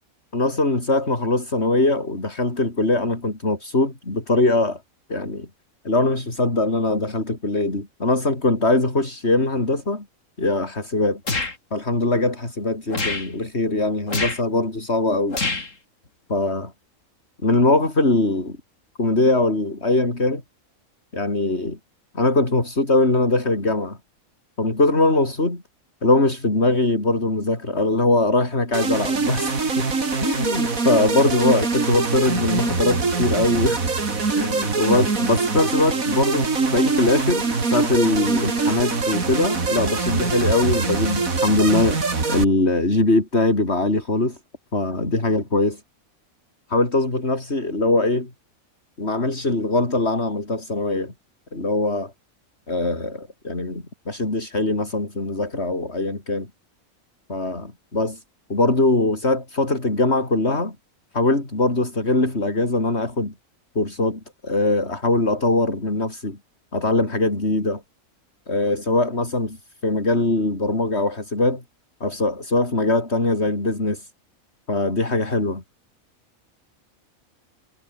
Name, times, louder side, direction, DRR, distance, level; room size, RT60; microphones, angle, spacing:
voice 1, 0.3-4.8 5.1-5.5 5.9-10.1 10.4-11.2 11.7-15.4 16.3-16.7 17.4-18.6 19.0-20.4 21.1-21.8 22.1-24.0 24.6-25.6 26.0-29.9 30.2-33.8 34.4-42.0 42.3-44.4 44.7-45.8 46.7-48.3 49.0-51.1 51.5-52.1 52.7-56.5 57.3-58.2 58.5-60.8 61.1-63.3 63.8-66.4 66.7-67.8 68.5-71.6 72.0-74.1 74.7-75.6, left 2 dB, 50° left, 5.2 m, -22 dB
sound 1, 11.3-11.5 12.9-13.3 14.1-14.4 15.3-15.7, left 3 dB, 65° left, 4.0 m, -25 dB
sound 2, 28.7-42.4, right 4 dB, 70° right, 3.3 m, -23 dB
omnidirectional pair, 1.5 m